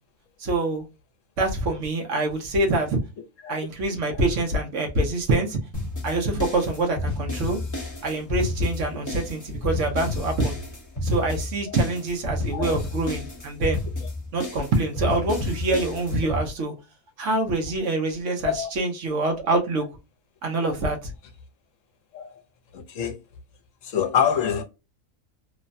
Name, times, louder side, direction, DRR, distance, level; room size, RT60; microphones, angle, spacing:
voice 1, 0.4-0.8 1.4-3.0 3.5-5.6 6.0-7.6 8.0-10.5 11.0-13.8 14.3-16.7 17.2-19.9 20.4-21.1, right 2 dB, 60° right, 1.1 m, -25 dB
sound 1, 5.7-16.4, left 2 dB, 15° left, 0.9 m, -31 dB
voice 2, 22.7-23.2 23.8-24.6, left 8 dB, 65° left, 1.0 m, -26 dB
3.1 x 2.2 x 2.5 m
omnidirectional pair, 1.5 m